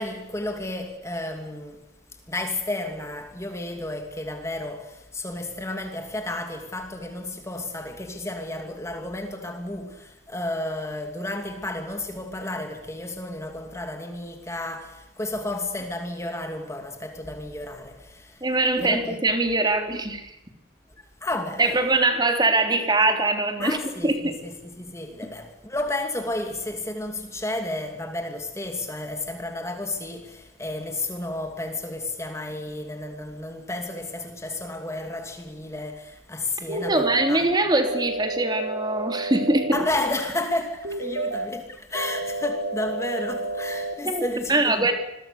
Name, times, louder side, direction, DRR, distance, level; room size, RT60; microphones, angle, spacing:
voice 1, 0.0-1.8 2.3-18.4 18.8-19.2 21.0-22.1 23.6-37.5 39.7-44.9, left 2 dB, 15° left, 2.6 m, -32 dB
voice 2, 18.4-20.4 21.6-23.8 24.0-24.3 36.7-39.9 44.0-44.2 44.5-44.9, right 2 dB, 20° right, 3.6 m, -22 dB
sound 1, 36.7-37.3 37.8-39.8 40.8-41.5 41.9-43.9, right 2 dB, 85° right, 4.7 m, -30 dB
28.0 x 22.0 x 6.9 m
head